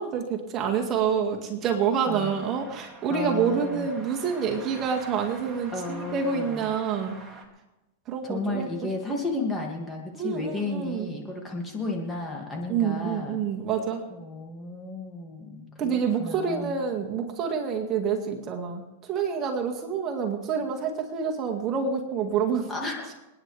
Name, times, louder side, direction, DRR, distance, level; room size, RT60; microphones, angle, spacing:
voice 1, 0.0-7.2 8.1-8.7 10.1-11.1 12.7-14.0 15.8-18.8 19.1-22.7, right 6 dB, 35° right, 1 dB, 2.0 m, -27 dB
sound 1, 2.2-7.4, right 3 dB, 15° right, 2.5 m, -46 dB
voice 2, 3.1-3.9 5.7-6.7 8.2-13.5 14.1-16.8 22.7-23.1, left 2 dB, 15° left, 0 dB, 2.4 m, -33 dB
28.5 x 9.9 x 3.5 m, 1.0 s
supercardioid pair, 130°, 0 cm